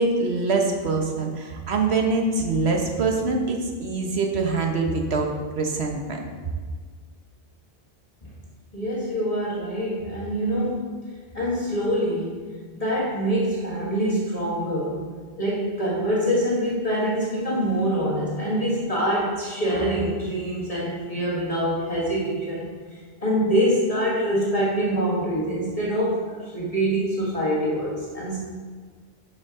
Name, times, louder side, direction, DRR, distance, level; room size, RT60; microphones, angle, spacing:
voice 1, 0.0-6.2, right 3 dB, 85° right, 2 dB, 1.3 m, -24 dB
voice 2, 8.7-10.9 11.3-12.4 12.7-15.0 15.4-22.7 23.2-28.4, equal, 35° left, -7 dB, 1.6 m, -25 dB
11.5 x 5.1 x 3.7 m, 1.5 s
omnidirectional pair, 1.1 m